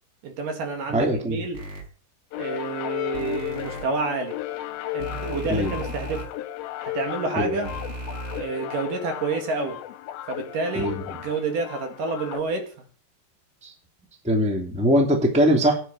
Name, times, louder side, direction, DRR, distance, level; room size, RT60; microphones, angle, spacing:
voice 1, 0.2-1.7 2.4-4.4 4.9-6.3 6.8-7.7 8.3-9.8 10.3-12.9, right 4 dB, 60° right, 3.5 m, -29 dB
voice 2, 0.9-1.4 5.5-5.7 7.4-7.5 10.8-11.0 13.6-13.7 14.2-15.8, equal, ahead, 1.8 m, -21 dB
sound 1, 1.5-1.8 3.1-3.8 5.0-6.2 7.6-8.4, right 1 dB, 20° right, 5.6 m, -35 dB
sound 2, 2.3-12.4, left 15 dB, 75° left, 2.7 m, -34 dB
16.0 x 10.0 x 4.9 m
omnidirectional pair, 4.6 m